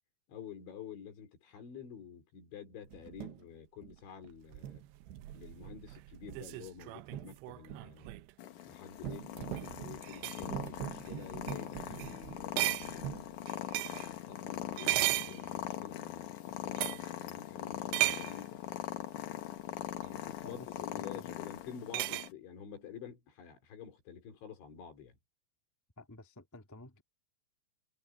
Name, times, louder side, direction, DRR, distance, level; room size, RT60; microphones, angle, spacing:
voice 1, 0.3-4.8 5.3-8.1 8.6-12.7 12.9-13.5 14.0-18.6 20.0-25.2, left 8 dB, 85° left, 6.6 m, -49 dB
sound 1, 2.9-3.4 3.8-4.3 4.6-8.3 9.0-13.2, right 12 dB, 75° right, 3.0 m, -45 dB
sound 2, 4.5-8.3 9.4-9.7 10.0-10.5 11.1-11.2 11.5-11.6 12.0-12.2 12.6-14.1 14.7-15.9 16.8-17.1 17.9-18.4 20.0-20.1 21.9-22.3, right 20 dB, 90° right, 2.9 m, -35 dB
Purr, 8.4-22.3, left 12 dB, 70° left, 2.0 m, -42 dB
voice 2, 20.4-20.9 21.1-21.3 26.0-27.0, left 2 dB, 10° left, 0.8 m, -52 dB
omnidirectional pair, 5.2 m